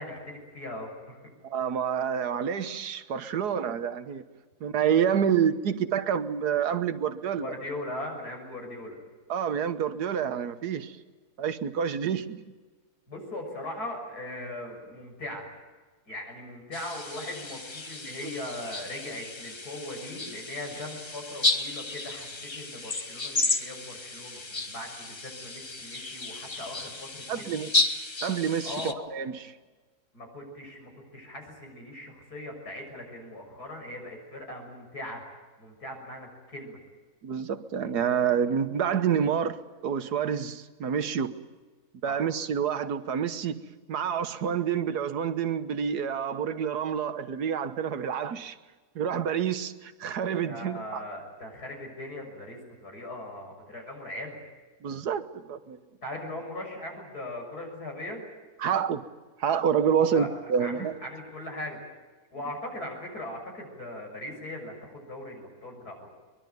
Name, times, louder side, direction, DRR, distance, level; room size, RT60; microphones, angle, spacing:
voice 1, 0.0-1.3 7.4-9.0 13.1-15.5 16.1-27.7 28.6-29.0 30.1-35.2 35.6-36.8 42.0-42.3 50.5-54.4 56.0-58.2 60.0-60.3 60.6-61.8 62.3-66.1, left 1 dB, 75° left, 7.1 m, -39 dB
voice 2, 1.4-4.2 4.6-7.5 9.3-11.0 11.4-12.4 27.3-27.7 28.2-29.5 37.2-41.3 42.0-43.6 43.9-48.6 49.0-51.0 54.8-55.8 58.6-59.0 59.4-61.0, right 8 dB, 85° right, 1.7 m, -28 dB
sound 1, 16.7-28.9, left 2 dB, 20° left, 0.9 m, -33 dB
23.0 x 22.0 x 9.3 m
omnidirectional pair, 1.6 m